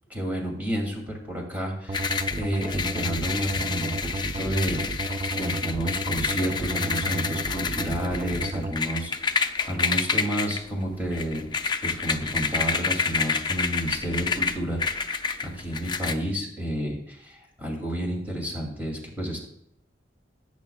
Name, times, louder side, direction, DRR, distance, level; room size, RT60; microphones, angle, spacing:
voice 1, 0.1-4.8 5.3-11.5 11.8-19.5, equal, 10° right, -1 dB, 2.8 m, -31 dB
sound 1, 1.9-16.1, left 5 dB, 25° left, 0.5 m, -29 dB
sound 2, 1.9-8.7, right 2 dB, 35° right, 0.4 m, -32 dB
16.5 x 8.6 x 2.4 m, 0.72 s
head